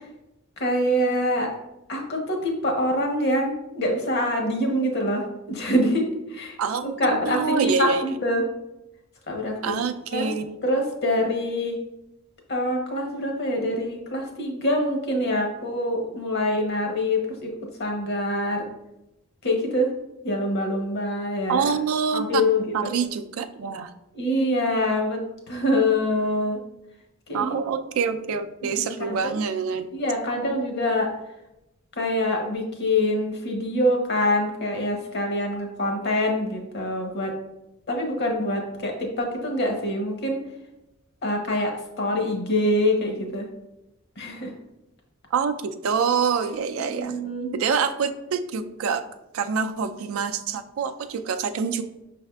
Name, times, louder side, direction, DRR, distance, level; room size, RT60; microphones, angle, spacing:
voice 1, 0.6-1.5 1.9-6.0 6.3-6.5 7.0-8.4 9.3-9.7 10.1-10.3 10.6-11.8 12.5-17.5 17.8-18.6 19.4-19.9 20.2-21.7 22.1-22.7 24.1-25.2 25.5-26.6 27.3-27.5 28.8-29.4 29.9-31.1 32.0-37.3 37.9-40.4 41.2-43.5 44.2-44.5 46.8-47.5, left 1 dB, 55° left, 2 dB, 0.9 m, -25 dB
voice 2, 6.6-8.0 9.6-10.6 21.5-22.5 22.7-23.9 27.3-29.9 45.3-47.1 47.5-49.0 49.3-51.8, right 6 dB, 75° right, 8 dB, 0.4 m, -26 dB
5.6 x 3.4 x 2.3 m, 0.91 s
head